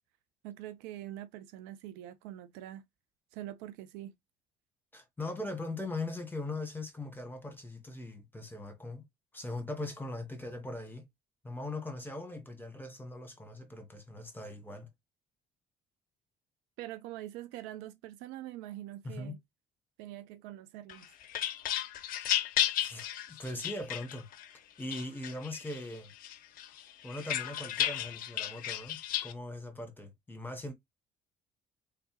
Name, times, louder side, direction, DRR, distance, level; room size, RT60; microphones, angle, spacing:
voice 1, 0.4-2.8 3.3-4.1 16.8-19.4 20.0-21.1, right 13 dB, 60° right, 0.4 m, -44 dB
voice 2, 4.9-9.0 9.3-11.1 11.4-14.9 19.0-19.4 22.8-24.3 24.8-26.1 27.0-30.7, left 2 dB, 10° left, 1.5 m, -40 dB
sound 1, 20.9-24.5 24.9-25.8 26.2-29.3, left 12 dB, 45° left, 0.6 m, -34 dB
3.6 x 3.2 x 3.1 m
figure-of-eight pair, 50°, 20 cm